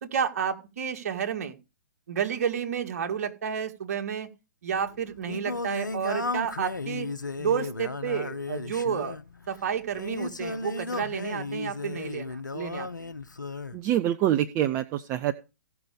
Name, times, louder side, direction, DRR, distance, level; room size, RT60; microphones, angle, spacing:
voice 1, 0.0-1.6 2.1-4.3 4.6-7.1 7.4-9.2 9.5-13.1, right 8 dB, 50° right, 6 dB, 2.0 m, -30 dB
Singing, 4.7-13.8, left 3 dB, 85° left, 0.9 m, -35 dB
voice 2, 13.7-15.3, right 12 dB, 25° right, 9 dB, 0.7 m, -25 dB
16.0 x 5.9 x 5.2 m, 0.29 s
figure-of-eight pair, 120°, 10 cm